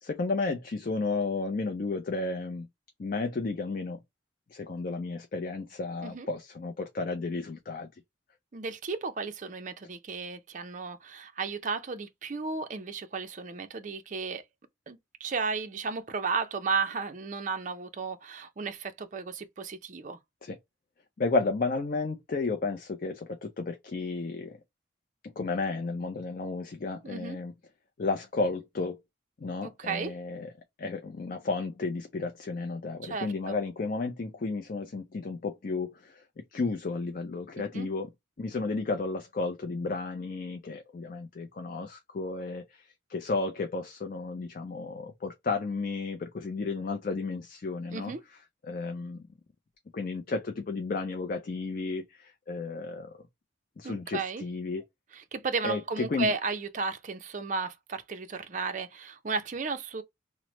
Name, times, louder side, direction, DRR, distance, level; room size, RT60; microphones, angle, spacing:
voice 1, 0.0-2.7 3.0-4.0 4.5-7.9 20.4-20.6 21.2-24.6 25.2-27.5 28.0-29.0 29.4-30.5 30.8-38.1 38.4-48.1 48.6-49.2 49.9-53.2 53.8-54.8 55.6-56.3, left 3 dB, 45° left, 0.4 m, -33 dB
voice 2, 8.5-14.4 14.9-20.2 27.0-27.4 29.6-30.1 33.0-33.6 37.6-37.9 47.9-48.2 53.8-54.4 55.1-60.0, right 4 dB, 40° right, 0.4 m, -34 dB
3.1 x 2.0 x 2.9 m
head